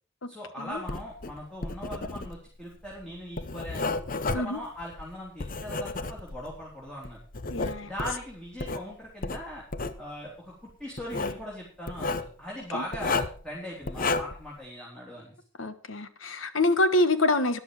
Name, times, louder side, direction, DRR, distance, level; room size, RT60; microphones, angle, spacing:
voice 1, 0.3-4.0 4.3-7.2 7.8-9.6 10.0-15.4, left 1 dB, 5° left, 3.4 m, -40 dB
Writing, 0.8-6.6 7.0-8.8 9.2-10.0 11.0-11.4 11.9-12.3 12.9-13.4 13.9-14.5, left 3 dB, 40° left, 0.8 m, -32 dB
voice 2, 7.5-7.9 12.7-12.8 15.6-17.6, left 2 dB, 70° left, 1.3 m, -26 dB
13.0 x 10.5 x 4.9 m
head